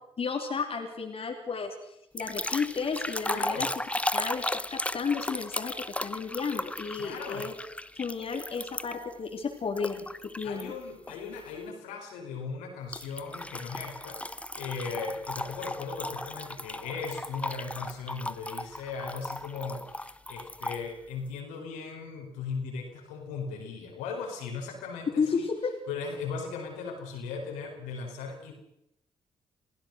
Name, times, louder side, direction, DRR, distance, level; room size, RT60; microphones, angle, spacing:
voice 1, 0.2-3.7 4.1-5.7 6.0-7.5 7.9-10.7 25.2-25.7, left 5 dB, 45° left, 2 dB, 3.3 m, -32 dB
sound 1, 2.2-9.1 9.8-10.6 11.1-11.4 12.9-20.8, left 1 dB, 10° left, 0.9 m, -36 dB
voice 2, 3.3-3.7 7.0-7.5 10.4-25.4 25.9-28.5, left 5 dB, 75° left, 1 dB, 4.5 m, -38 dB
27.5 x 16.5 x 6.4 m, 0.82 s
hypercardioid pair, 40°, 13 cm